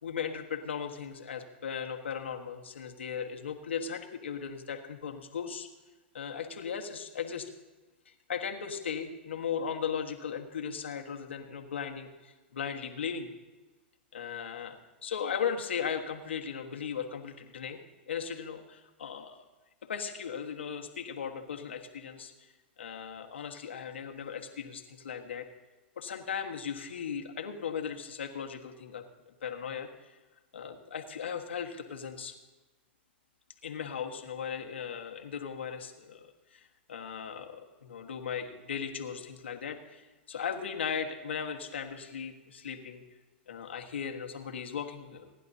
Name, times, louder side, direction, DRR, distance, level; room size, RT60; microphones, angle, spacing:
voice 1, 0.0-5.7 6.1-7.5 8.0-13.3 14.1-17.8 18.1-19.4 19.8-25.5 26.0-30.2 30.5-32.3 33.6-43.0 43.5-45.3, left 7 dB, 85° left, 3 dB, 1.5 m, -37 dB
28.0 x 11.0 x 2.8 m, 1.2 s
hypercardioid pair, 115°, 6 cm